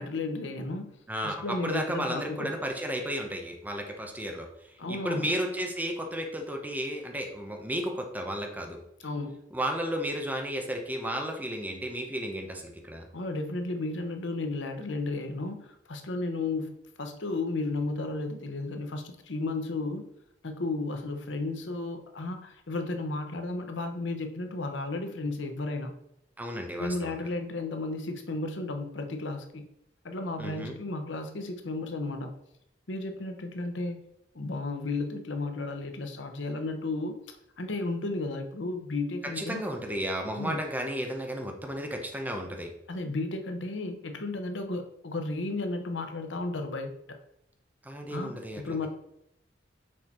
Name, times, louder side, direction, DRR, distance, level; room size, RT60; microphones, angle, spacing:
voice 1, 0.0-2.5 4.8-5.3 9.0-9.4 13.1-20.1 20.4-25.9 26.8-29.7 30.0-32.3 32.9-34.0 34.3-39.6 40.4-40.6 42.9-47.2 48.1-48.9, left 2 dB, 85° left, 6 dB, 0.9 m, -33 dB
voice 2, 1.1-8.8 9.5-13.1 26.4-27.1 30.4-30.8 39.4-42.7 47.8-48.9, equal, 10° right, 2 dB, 0.9 m, -33 dB
6.4 x 4.2 x 4.4 m, 0.76 s
head